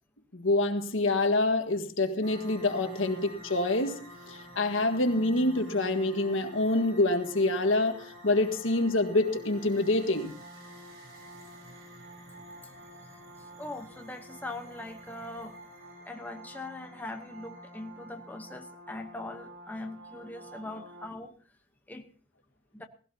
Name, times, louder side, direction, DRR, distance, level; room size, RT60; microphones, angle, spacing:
voice 1, 0.3-10.4, left 2 dB, 70° left, 6 dB, 1.7 m, -26 dB
sound 1, 2.2-21.1, equal, 80° right, 3.7 m, -48 dB
voice 2, 13.6-15.5 16.1-21.3 21.9-22.1 22.7-22.8, left 2 dB, 10° left, 4 dB, 1.0 m, -41 dB
19.5 x 16.5 x 2.9 m, 0.39 s
head